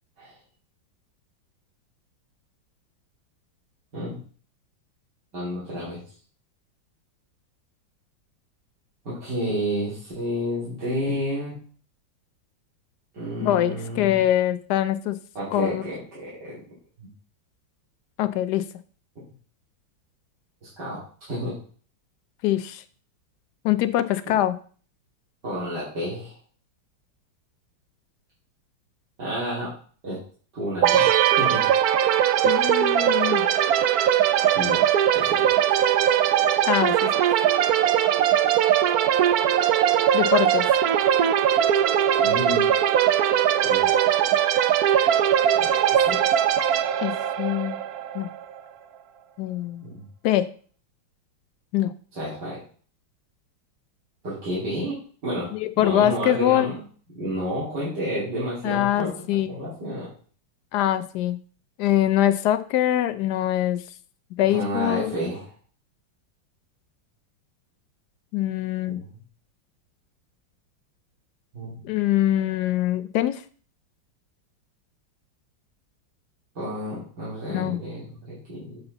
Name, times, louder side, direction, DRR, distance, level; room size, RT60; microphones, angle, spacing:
voice 1, 5.3-6.0 9.1-11.6 13.1-14.2 15.4-16.6 17.0-17.1 20.6-21.0 21.3-21.5 24.3-24.4 25.4-26.4 29.2-29.7 30.0-30.2 30.5-31.1 31.3-31.6 34.5-34.8 35.1-35.7 42.2-42.7 43.7-43.8 45.6-46.2 49.8-50.0 52.2-52.6 54.2-55.0 55.2-56.8 57.1-59.1 59.5-60.1 64.4-65.5 68.9-69.2 71.5-71.7 76.6-78.8, equal, 55° right, -10 dB, 3.5 m, -30 dB
voice 2, 13.4-15.2 15.5-15.8 18.2-18.6 22.4-22.8 23.6-24.6 32.4-33.5 36.7-37.1 40.1-40.7 47.0-47.1 47.4-47.8 48.1-48.3 49.4-49.9 50.2-50.5 51.7-51.9 55.5-56.7 58.6-59.5 60.7-61.4 61.8-63.8 64.4-65.1 68.3-69.0 71.8-73.4 77.5-77.8, left 13 dB, 75° left, 12 dB, 1.0 m, -23 dB
sound 1, 30.8-48.4, right 10 dB, 75° right, 0.8 m, -20 dB
7.9 x 5.6 x 4.0 m, 0.43 s
omnidirectional pair, 2.2 m